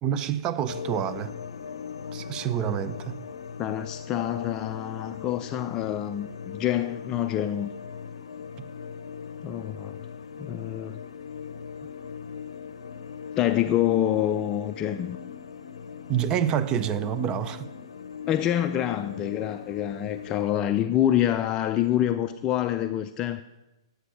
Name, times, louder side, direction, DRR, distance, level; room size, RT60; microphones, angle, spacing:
voice 1, 0.0-1.3 2.1-3.2 8.6-8.7 16.1-17.7, right 9 dB, 30° right, 0.6 m, -27 dB
sound 1, 0.7-20.4, left 6 dB, 75° left, 0.6 m, -39 dB
voice 2, 3.6-7.7 9.4-10.0 10.4-11.0 13.4-15.2 18.3-23.4, left 11 dB, 25° left, 0.4 m, -26 dB
9.6 x 7.9 x 6.3 m
hypercardioid pair, 120°, 3 cm